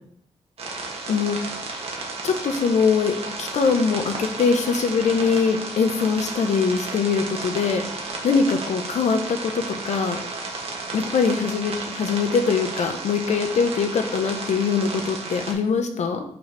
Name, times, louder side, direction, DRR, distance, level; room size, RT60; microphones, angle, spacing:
sound 1, 0.6-15.5, right 3 dB, 55° right, 1.4 m, -33 dB
voice 1, 2.2-10.2 10.9-16.2, left 5 dB, 75° left, 6 dB, 0.9 m, -22 dB
5.3 x 4.5 x 5.3 m, 0.65 s
wide cardioid pair, 145°, 12 cm